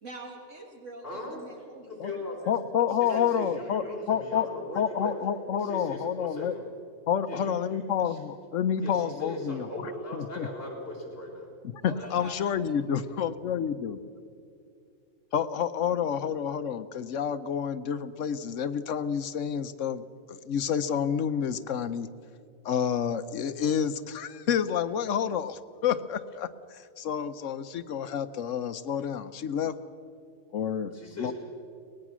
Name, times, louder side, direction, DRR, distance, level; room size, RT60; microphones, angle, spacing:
voice 1, 0.0-2.2 3.1-3.9 11.8-13.3, right 2 dB, 55° right, 2 dB, 2.1 m, -45 dB
voice 2, 1.0-1.4 1.9-2.5 3.0-5.1 5.6-6.7 7.2-8.2 8.8-11.5 30.9-31.3, left 1 dB, 40° left, 0 dB, 4.5 m, -39 dB
voice 3, 2.5-4.5 4.7-6.5 7.1-10.5 11.6-14.0 15.3-22.1 22.6-29.7 30.5-31.3, left 8 dB, 60° left, 11 dB, 1.0 m, -29 dB
23.5 x 19.0 x 6.1 m, 2.4 s
omnidirectional pair, 1.6 m